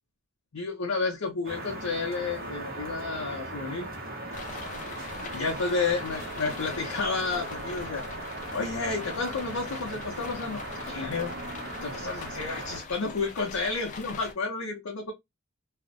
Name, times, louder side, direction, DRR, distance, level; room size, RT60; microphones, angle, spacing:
voice 1, 0.5-3.9 5.3-8.0 8.5-11.3 11.8-15.1, left 4 dB, 90° left, 0.6 m, -31 dB
sound 1, 1.4-12.8, right 1 dB, 45° right, 0.8 m, -38 dB
sound 2, 4.3-14.3, left 4 dB, 35° left, 0.4 m, -43 dB
2.4 x 2.0 x 2.5 m
head